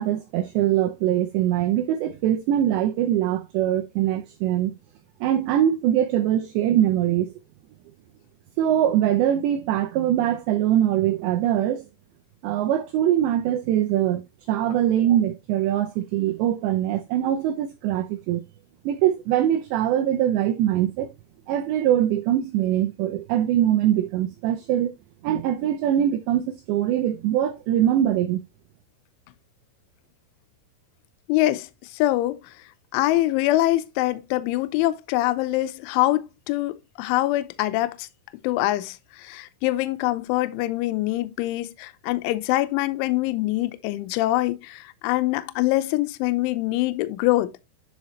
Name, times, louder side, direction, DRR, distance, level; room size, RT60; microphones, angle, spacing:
voice 1, 0.0-4.8 5.2-7.3 8.6-11.9 12.4-14.2 14.5-18.4 18.9-21.1 21.5-24.9 25.2-28.4, right 11 dB, 90° right, 2.5 m, -22 dB
voice 2, 31.3-32.5 32.9-38.1 38.4-47.7, left 17 dB, 80° left, 3.0 m, -24 dB
9.9 x 5.8 x 3.0 m
omnidirectional pair, 6.0 m